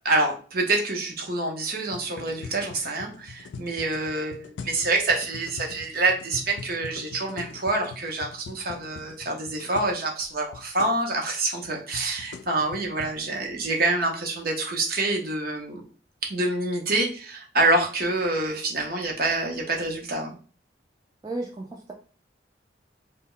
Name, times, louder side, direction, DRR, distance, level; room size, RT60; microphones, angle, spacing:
voice 1, 0.0-15.8 16.3-20.4, right 2 dB, 55° right, 1 dB, 0.7 m, -26 dB
sound 1, 1.8-10.0 10.2-10.3 10.5-11.0 11.6-13.2, left 4 dB, 75° left, 0.3 m, -42 dB
voice 2, 21.2-21.9, right 2 dB, 20° right, -1 dB, 0.3 m, -33 dB
2.1 x 2.0 x 3.7 m, 0.38 s
head